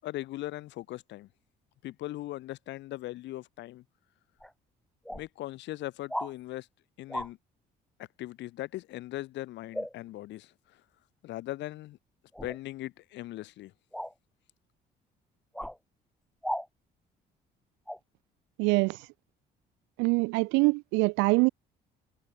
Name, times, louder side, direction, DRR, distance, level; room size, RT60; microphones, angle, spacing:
voice 1, 0.0-1.3 1.8-3.8 5.1-6.7 7.0-7.4 8.2-10.5 11.2-12.0 12.4-13.7, left 16 dB, 75° left, 1.4 m, -39 dB
sound 1, 4.4-4.5 5.0-5.3 6.1-6.3 7.1-7.3 9.7-9.9 12.3-12.6 13.9-14.1 15.5-15.8 16.4-16.7 17.9-18.0, equal, ahead, 1.6 m, -35 dB
voice 2, 18.6-19.1 20.0-21.5, right 28 dB, 85° right, 0.7 m, -24 dB
supercardioid pair, 70°, 19 cm